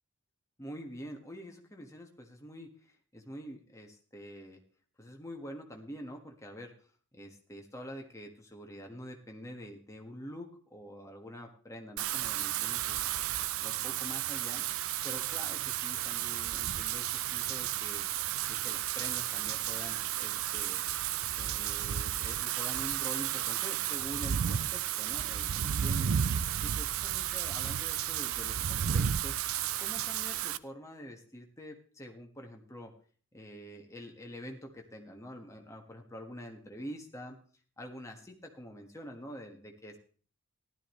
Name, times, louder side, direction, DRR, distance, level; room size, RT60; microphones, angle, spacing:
voice 1, 0.6-4.6 5.0-6.7 7.1-13.0 13.6-14.6 15.0-18.0 18.5-20.8 21.4-26.1 26.6-29.4 29.8-32.9 33.3-37.4 37.8-40.0, equal, 15° left, 2 dB, 1.6 m, -46 dB
Wind / Rain, 12.0-30.6, right 10 dB, 65° right, 0.5 m, -33 dB
15.5 x 12.0 x 3.2 m, 0.42 s
head